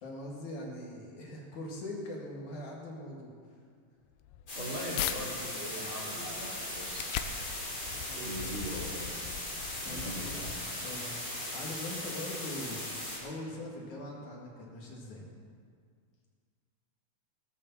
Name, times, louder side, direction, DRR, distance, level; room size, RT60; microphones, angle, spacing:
voice 1, 0.0-3.3 7.9-8.7 9.8-10.6 10.8-15.3, left 1 dB, 60° left, -2 dB, 3.3 m, -42 dB
sound 1, 4.0-5.2 5.7-11.0, left 10 dB, 80° left, 2.4 m, -41 dB
sound 2, 4.5-13.2, left 1 dB, 35° left, 5.6 m, -38 dB
voice 2, 4.5-7.2 8.2-9.2 9.8-10.3, right 1 dB, 40° right, -5 dB, 3.9 m, -40 dB
18.5 x 8.5 x 7.2 m, 2.1 s
omnidirectional pair, 4.0 m